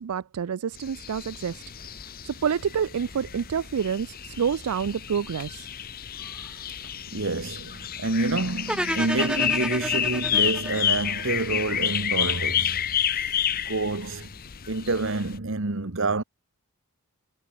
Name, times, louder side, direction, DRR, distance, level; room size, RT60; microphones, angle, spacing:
voice 1, 0.0-5.7, right 7 dB, 80° right, 0.4 m, -28 dB
sound 1, 0.8-15.4, left 10 dB, 40° left, 0.9 m, -30 dB
voice 2, 7.1-12.8 13.7-14.3 14.7-16.2, right 3 dB, 60° right, 1.4 m, -28 dB
sound 2, 8.7-11.8, right 1 dB, 5° right, 0.6 m, -31 dB
head